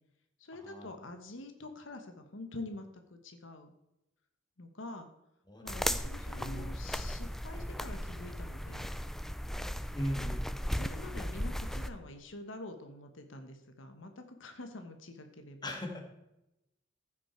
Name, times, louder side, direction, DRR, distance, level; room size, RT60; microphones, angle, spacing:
voice 1, 0.4-3.7 4.6-5.1 5.6-8.9 10.7-15.7, left 2 dB, 80° left, 6 dB, 1.2 m, -46 dB
sound 1, 5.7-11.9, equal, ahead, 0.4 m, -36 dB
voice 2, 6.4-6.7 9.9-10.5 15.6-16.1, equal, 20° left, 2 dB, 1.8 m, -38 dB
15.0 x 6.1 x 4.4 m, 0.89 s
head